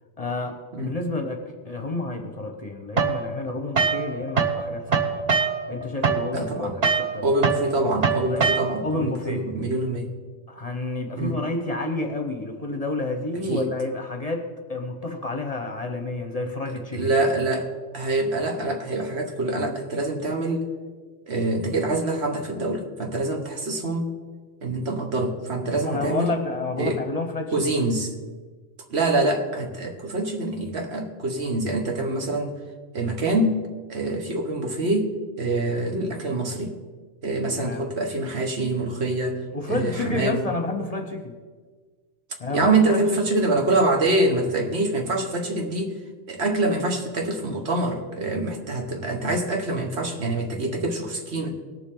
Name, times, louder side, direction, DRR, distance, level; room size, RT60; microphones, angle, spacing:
voice 1, 0.2-5.2 5.7-7.2 8.3-8.5 8.8-9.4 10.5-17.1 25.8-27.6 37.5-37.9 39.5-41.3 42.4-43.0, left 2 dB, 35° left, 4 dB, 0.9 m, -30 dB
sound 1, 3.0-4.6 4.9-9.0, right 5 dB, 40° right, 0.8 m, -24 dB
voice 2, 6.3-6.7 7.2-10.1 11.2-11.3 13.5-13.7 16.9-20.7 21.3-24.1 24.6-26.4 26.8-27.0 27.5-28.1 28.9-32.6 32.9-33.6 33.9-36.7 37.2-39.4 39.7-40.4 42.5-46.0 46.3-51.5, right 2 dB, 60° right, 3 dB, 1.5 m, -25 dB
19.0 x 7.1 x 3.8 m, 1.4 s
omnidirectional pair, 1.2 m